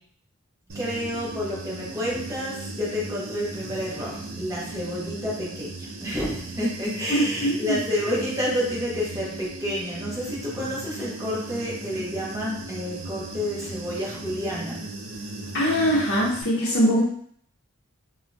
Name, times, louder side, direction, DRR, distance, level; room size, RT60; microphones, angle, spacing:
voice 1, 0.7-14.9, equal, 15° right, -5 dB, 0.6 m, -29 dB
Human voice / Buzz, 0.7-16.4, right 2 dB, 75° right, 0.5 m, -37 dB
voice 2, 7.1-7.8 15.5-17.0, equal, 50° left, -8 dB, 0.6 m, -22 dB
3.4 x 2.1 x 2.5 m, 0.63 s
head